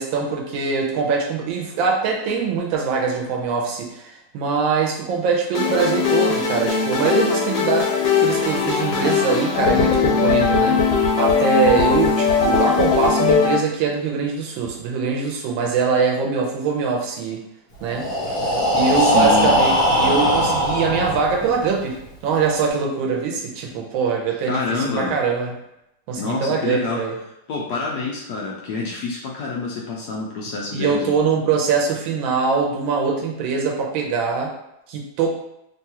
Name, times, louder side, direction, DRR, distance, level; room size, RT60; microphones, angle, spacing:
voice 1, 0.0-17.4 17.8-25.5 26.1-27.1 30.7-34.5 34.9-35.3, right 5 dB, 85° right, 0 dB, 1.4 m, -23 dB
sound 1, 5.5-13.5, left 5 dB, 85° left, 1.6 m, -19 dB
Breathing, 17.8-21.7, equal, 55° left, 1.2 m, -20 dB
voice 2, 19.0-19.5 24.4-25.2 26.2-27.0 27.5-31.1, left 3 dB, 70° left, -3 dB, 1.0 m, -27 dB
3.5 x 2.3 x 2.8 m, 0.83 s
omnidirectional pair, 2.1 m